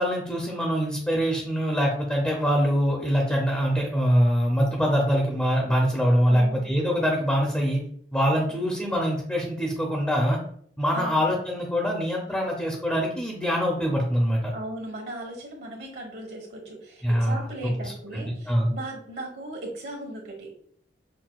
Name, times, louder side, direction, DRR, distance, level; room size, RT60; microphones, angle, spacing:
voice 1, 0.0-7.8 8.1-10.4 10.8-14.5 17.0-17.4 18.1-18.7, equal, 5° left, -1 dB, 0.6 m, -24 dB
voice 2, 6.3-6.7 10.9-11.1 12.3-12.4 14.5-20.5, right 1 dB, 65° right, 1 dB, 1.2 m, -38 dB
5.8 x 2.2 x 2.3 m, 0.64 s
head